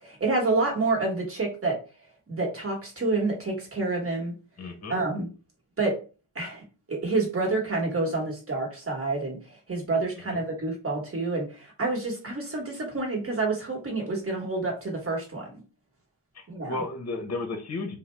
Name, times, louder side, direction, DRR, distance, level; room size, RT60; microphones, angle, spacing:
voice 1, 0.0-1.7 2.3-4.3 4.9-5.3 5.8-5.9 6.3-15.5 16.5-16.8, right 3 dB, 30° right, 0 dB, 1.3 m, -28 dB
voice 2, 4.6-4.9 10.3-10.4 16.3-18.0, left 2 dB, 35° left, 6 dB, 0.8 m, -33 dB
2.6 x 2.2 x 3.2 m, 0.34 s
cardioid pair, 75°, 48 cm